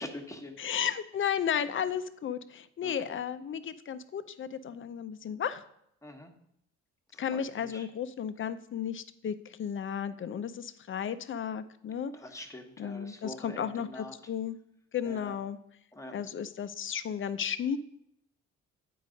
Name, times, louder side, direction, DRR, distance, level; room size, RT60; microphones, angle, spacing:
voice 1, 0.0-0.6 2.8-3.2 6.0-6.3 7.1-7.9 12.1-14.1 15.0-15.4 15.9-16.1, left 1 dB, 10° left, 3 dB, 1.2 m, -44 dB
voice 2, 0.6-5.6 7.2-12.1 12.8-14.6 14.9-15.6 16.1-17.8, left 8 dB, 40° left, 13 dB, 0.6 m, -34 dB
8.2 x 4.7 x 5.1 m, 0.74 s
cardioid pair, 90°, 30 cm